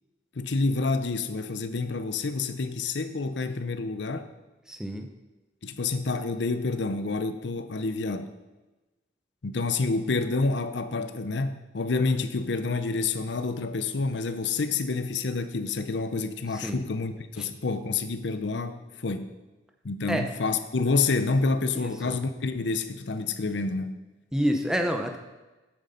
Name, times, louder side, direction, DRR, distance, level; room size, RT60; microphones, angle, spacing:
voice 1, 0.3-4.3 5.6-8.3 9.4-19.4 19.8-23.9, left 3 dB, 70° left, 10 dB, 0.7 m, -28 dB
voice 2, 4.7-5.1 16.6-16.8 17.4-17.5 20.1-20.3 21.7-22.1 24.3-25.2, equal, 5° right, 4 dB, 0.7 m, -28 dB
8.8 x 7.5 x 5.7 m, 1.1 s
head